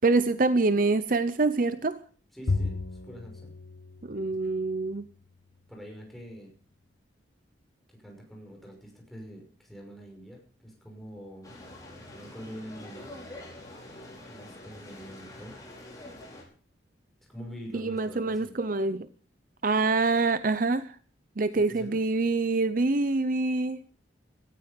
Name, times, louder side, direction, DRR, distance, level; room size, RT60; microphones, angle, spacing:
voice 1, 0.0-2.0 4.0-5.1 17.7-19.1 19.6-21.0 21.4-23.8, right 3 dB, 45° right, 0.6 m, -25 dB
voice 2, 2.3-2.8 3.0-3.5 5.7-6.5 7.9-11.6 11.9-13.1 14.3-15.5 17.3-18.5 21.5-22.0, equal, ahead, 5.9 m, -45 dB
Bowed string instrument, 2.5-5.0, left 3 dB, 80° left, 1.1 m, -34 dB
sound 1, 11.4-16.4, left 1 dB, 20° left, 5.8 m, -46 dB
17.0 x 14.0 x 5.2 m
head